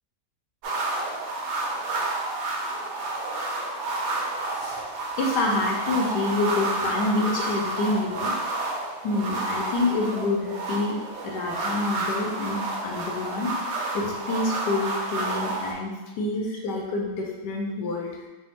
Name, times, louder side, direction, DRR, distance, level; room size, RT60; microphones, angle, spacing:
sound 1, 0.6-15.7, right 2 dB, 75° right, 1.1 m, -30 dB
voice 1, 5.2-8.3 9.0-11.0 11.2-13.5 13.9-18.3, left 2 dB, 85° left, 0 dB, 1.3 m, -27 dB
3.4 x 2.1 x 4.0 m, 1.2 s
omnidirectional pair, 1.8 m